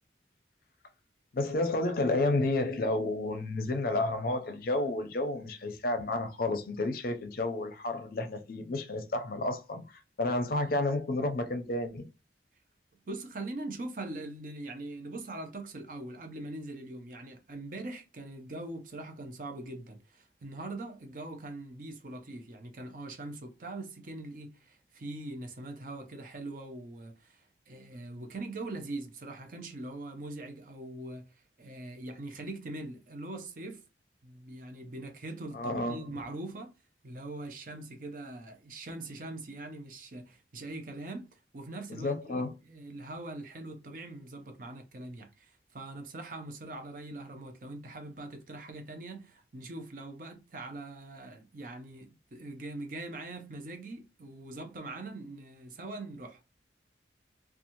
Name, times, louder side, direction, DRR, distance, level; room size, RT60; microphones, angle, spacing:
voice 1, 1.3-12.1 35.5-36.0 41.9-42.5, left 2 dB, 55° left, 0.5 m, -31 dB
voice 2, 13.1-33.8 34.2-36.7 37.0-56.4, right 2 dB, 50° right, 0.6 m, -42 dB
2.9 x 2.3 x 2.6 m
head